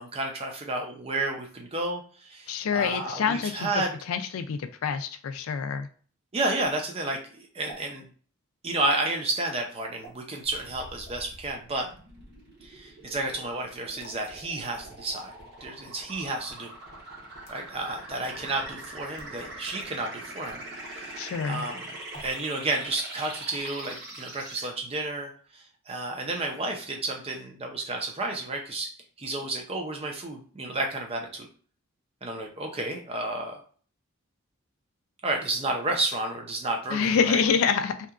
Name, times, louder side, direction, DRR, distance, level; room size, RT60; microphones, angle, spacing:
voice 1, 0.0-3.9 6.3-8.1 8.6-11.9 12.6-15.3 15.6-16.7 17.5-21.8 22.2-28.9 29.2-31.5 32.2-33.6 35.2-37.3, right 2 dB, 25° right, 2 dB, 0.5 m, -31 dB
voice 2, 2.5-5.9 21.2-21.7 36.9-37.9, left 6 dB, 75° left, 9 dB, 0.3 m, -27 dB
sound 1, 6.6-6.7 7.6-7.9 8.8-9.0 10.0-10.2 11.0-11.3 14.0-14.3 15.1-15.3 16.2-16.3 17.2-17.6 18.2-18.3 19.0-19.3 19.8-19.9 20.5-20.6 22.1-22.5 22.8-23.2, right 1 dB, 50° left, 0.7 m, -48 dB
sound 2, 10.5-24.7, right 1 dB, 50° right, 0.9 m, -43 dB
2.8 x 2.3 x 2.4 m, 0.43 s
head